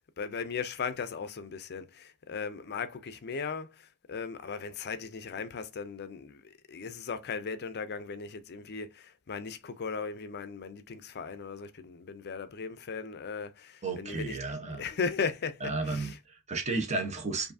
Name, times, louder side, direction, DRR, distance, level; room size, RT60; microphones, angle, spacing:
voice 1, 0.0-3.7 4.1-14.4 14.8-16.2, left 5 dB, 50° left, 0.5 m, -37 dB
voice 2, 13.8-14.9 15.6-17.5, right 3 dB, 30° right, 0.9 m, -33 dB
4.6 x 2.7 x 2.6 m
head